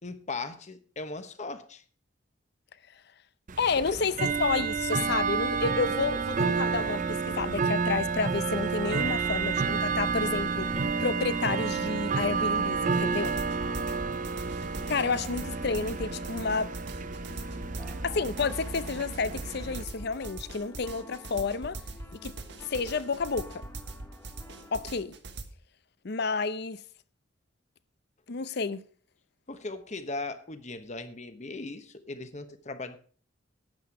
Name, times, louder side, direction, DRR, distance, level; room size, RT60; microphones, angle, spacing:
voice 1, 0.0-1.8 3.9-4.4 29.5-33.0, left 3 dB, 40° left, 1.1 m, -38 dB
Bell / Tick-tock, 3.5-19.8, right 5 dB, 45° right, 0.6 m, -30 dB
voice 2, 3.6-4.1 4.4-10.7 11.0-13.4 14.9-16.7 18.0-21.8 22.1-22.3 22.6-23.6 24.7-25.1 26.0-26.8 28.3-28.8, left 4 dB, 60° left, 0.7 m, -30 dB
sound 1, 5.8-25.0, left 1 dB, 15° left, 1.8 m, -50 dB
sound 2, 12.9-25.4, right 2 dB, 65° right, 1.5 m, -42 dB
11.5 x 8.6 x 4.8 m
head